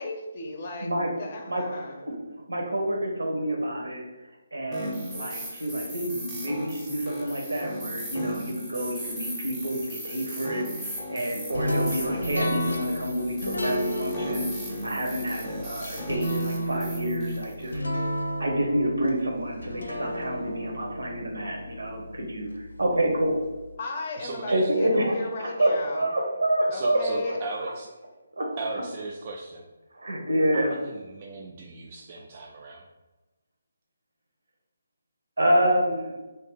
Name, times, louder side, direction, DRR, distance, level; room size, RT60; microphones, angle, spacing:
voice 1, 0.0-2.0 23.8-26.1 26.7-27.4, left 3 dB, 40° left, 2 dB, 0.5 m, -35 dB
voice 2, 1.5-4.1 4.5-14.5 14.8-17.8 18.4-23.4 24.5-27.3 27.6-27.7 28.4-28.5 29.9-30.8 35.4-36.1, right 1 dB, 80° right, 0 dB, 0.9 m, -28 dB
sound 1, 4.7-17.8, equal, 5° right, 0.6 m, -37 dB
sound 2, 11.5-22.6, equal, 85° left, 0.6 m, -32 dB
voice 3, 24.2-24.6 26.7-27.9 28.6-29.6 30.5-32.9, right 3 dB, 35° right, -1 dB, 0.3 m, -37 dB
2.6 x 2.2 x 3.8 m, 1.1 s
figure-of-eight pair, 155°, 0 cm